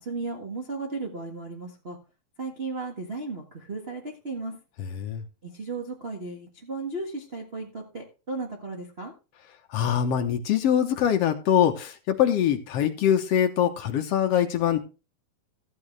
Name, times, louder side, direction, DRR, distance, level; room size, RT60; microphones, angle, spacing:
voice 1, 0.0-2.0 2.4-4.6 5.4-9.1, right 3 dB, 50° right, -1 dB, 0.7 m, -35 dB
voice 2, 9.7-14.8, left 9 dB, 80° left, 5 dB, 1.4 m, -23 dB
14.0 x 8.7 x 3.3 m, 0.31 s
omnidirectional pair, 4.2 m